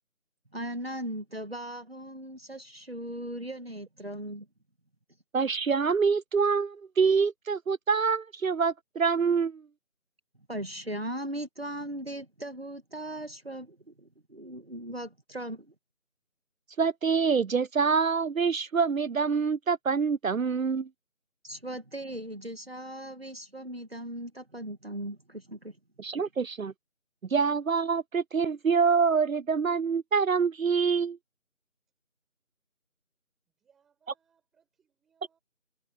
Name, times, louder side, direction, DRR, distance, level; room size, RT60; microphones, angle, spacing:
voice 1, 0.5-4.5 10.5-15.7 21.4-25.8, right 1 dB, 45° right, 1.8 m, -38 dB
voice 2, 5.3-9.6 16.8-20.9 26.0-26.7 27.3-31.2, right 5 dB, 75° right, 0.7 m, -26 dB
voice 3, 33.5-35.4, right 7 dB, ahead, 5.8 m, -70 dB
figure-of-eight pair, 175°, 41 cm